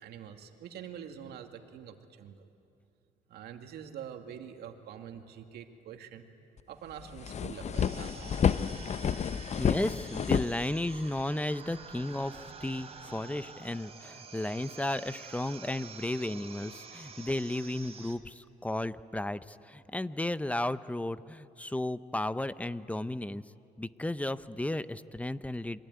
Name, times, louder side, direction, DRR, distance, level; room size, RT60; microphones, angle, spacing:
voice 1, 0.0-2.4 3.3-6.3 6.7-8.8, right 8 dB, 75° right, 5 dB, 2.3 m, -46 dB
sound 1, 6.6-6.7 7.0-11.2, left 7 dB, 40° left, 0.7 m, -30 dB
sound 2, 7.7-18.2, right 5 dB, 40° right, 3.2 m, -48 dB
voice 2, 9.6-23.4 23.8-25.8, left 1 dB, 10° left, 14 dB, 0.8 m, -34 dB
27.0 x 22.5 x 9.5 m, 2.5 s
supercardioid pair, 80°, 17 cm